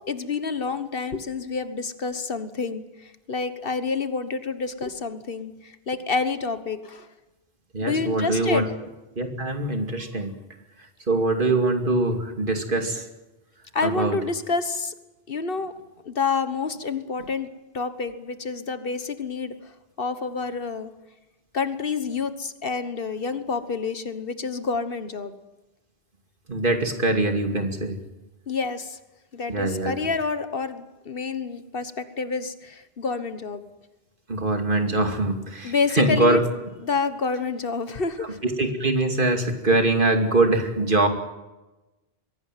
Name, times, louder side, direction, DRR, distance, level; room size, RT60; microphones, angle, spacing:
voice 1, 0.1-7.1 7.8-8.7 13.7-14.9 15.3-15.7 16.0-17.5 17.7-19.5 20.0-20.9 21.5-25.3 28.5-29.0 29.3-33.6 35.6-36.4 36.8-38.4, left 4 dB, 60° left, 11 dB, 1.5 m, -28 dB
voice 2, 7.7-8.6 9.2-10.3 11.1-13.0 13.8-14.2 26.5-28.0 29.5-29.9 34.3-36.4 38.4-41.1, right 2 dB, 55° right, 5 dB, 2.8 m, -23 dB
23.0 x 17.0 x 9.2 m, 1.1 s
omnidirectional pair, 1.0 m